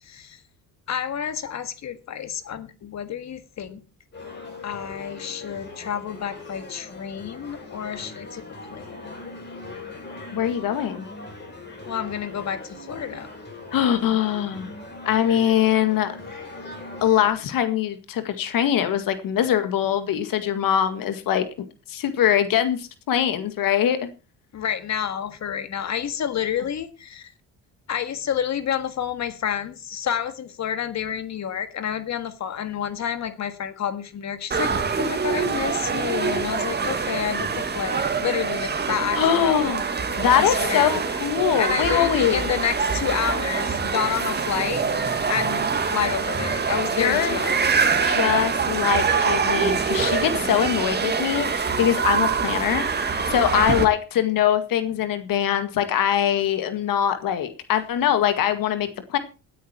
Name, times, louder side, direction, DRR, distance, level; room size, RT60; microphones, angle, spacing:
voice 1, 0.0-0.4 0.9-3.8 4.6-8.5 8.7-9.2 11.9-13.3 24.5-27.3 27.9-39.7 40.3-40.9 41.6-44.8 45.3-47.7 49.8-49.9 53.5-53.9, left 9 dB, 50° left, 11 dB, 1.8 m, -29 dB
sound 1, 4.1-17.3, left 2 dB, 30° left, 7.6 m, -40 dB
voice 2, 10.3-11.1 13.7-14.7 15.1-16.1 17.0-21.5 21.9-24.1 39.1-39.8 40.2-42.5 47.0-47.4 48.0-52.8 53.1-59.2, left 10 dB, 75° left, 10 dB, 2.0 m, -22 dB
sound 2, 34.5-53.9, right 5 dB, 30° right, 1.9 m, -24 dB
17.0 x 9.4 x 4.4 m, 0.32 s
cardioid pair, 115°, 34 cm